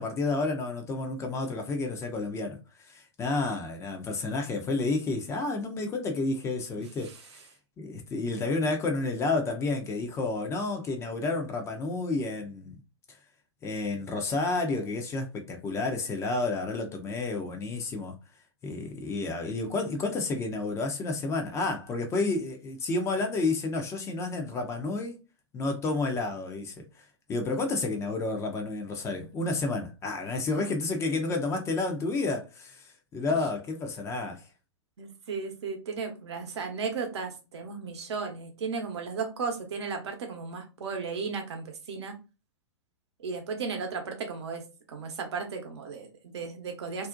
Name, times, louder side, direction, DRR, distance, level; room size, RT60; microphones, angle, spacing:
voice 1, 0.0-7.4 7.8-12.8 13.1-13.2 13.6-18.2 18.6-25.2 25.5-34.4, left 3 dB, 20° left, 0.5 m, -30 dB
voice 2, 35.0-42.1 43.2-47.1, right 5 dB, 65° right, 0.8 m, -35 dB
2.5 x 2.0 x 2.5 m
figure-of-eight pair, 110°, 15 cm